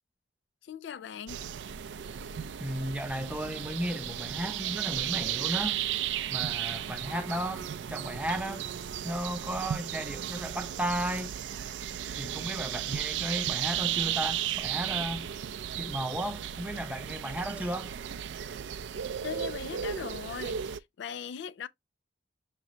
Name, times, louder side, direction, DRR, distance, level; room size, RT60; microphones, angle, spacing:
voice 1, 0.6-1.4 19.2-21.7, left 7 dB, 65° left, 0.3 m, -39 dB
sound 1, 1.3-20.8, right 10 dB, 70° right, 0.4 m, -35 dB
voice 2, 2.6-5.8 6.3-8.6 9.0-11.3 12.2-15.3 15.8-17.9, right 1 dB, 5° right, 0.6 m, -34 dB
5.9 x 3.0 x 2.6 m
head